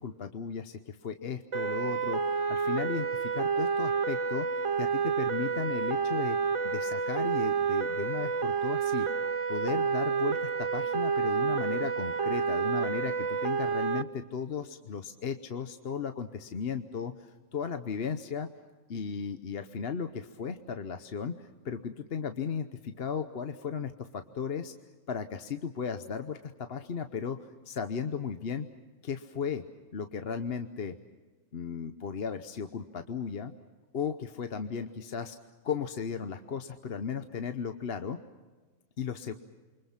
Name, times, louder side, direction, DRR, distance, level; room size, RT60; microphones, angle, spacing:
voice 1, 0.0-4.5 4.8-6.4 6.6-9.1 9.5-18.5 18.9-24.7 25.1-27.4 27.7-28.7 29.0-29.6 29.9-31.0 31.5-33.5 33.9-35.4 35.6-38.2 39.0-39.3, left 6 dB, 50° left, 8 dB, 1.0 m, -35 dB
sound 1, 1.5-14.0, right 6 dB, 35° right, 0.5 m, -29 dB
28.5 x 24.0 x 5.9 m, 1.3 s
omnidirectional pair, 1.5 m